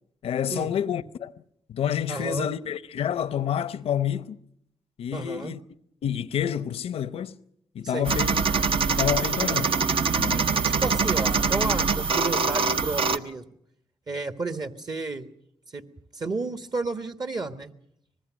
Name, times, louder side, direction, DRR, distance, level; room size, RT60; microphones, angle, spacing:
voice 1, 0.2-1.3 1.7-4.4 5.0-5.6 6.0-7.4 7.7-8.4 8.7-9.7 10.2-10.4, left 9 dB, 80° left, 0.8 m, -28 dB
voice 2, 2.1-2.5 5.1-5.5 7.8-8.1 10.2-13.4 14.1-15.3 15.7-15.8 16.1-17.7, right 3 dB, 45° right, 1.4 m, -32 dB
sound 1, 8.1-13.2, right 5 dB, 65° right, 1.1 m, -24 dB
24.5 x 20.5 x 6.3 m
cardioid pair, 60°, 10 cm